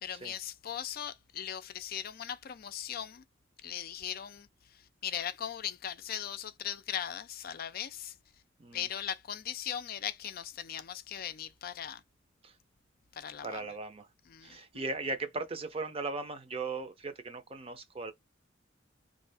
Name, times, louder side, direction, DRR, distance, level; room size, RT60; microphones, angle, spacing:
voice 1, 0.0-3.2 3.6-8.1 8.7-12.0 13.1-13.6 14.3-14.8, left 9 dB, 55° left, 0.4 m, -39 dB
voice 2, 13.4-14.1 14.4-18.1, right 3 dB, 30° right, 0.6 m, -38 dB
3.5 x 2.6 x 3.3 m
head